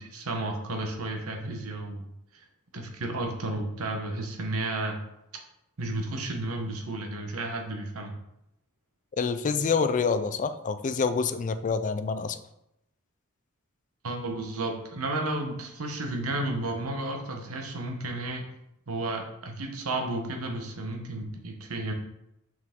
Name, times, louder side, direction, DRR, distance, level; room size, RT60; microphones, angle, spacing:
voice 1, 0.0-2.0 2.7-5.0 5.8-8.1 14.0-18.5 18.9-21.9, right 2 dB, 90° right, 3 dB, 1.1 m, -32 dB
voice 2, 9.2-12.4, left 5 dB, 35° left, 11 dB, 0.4 m, -27 dB
6.0 x 4.7 x 3.7 m, 0.83 s
head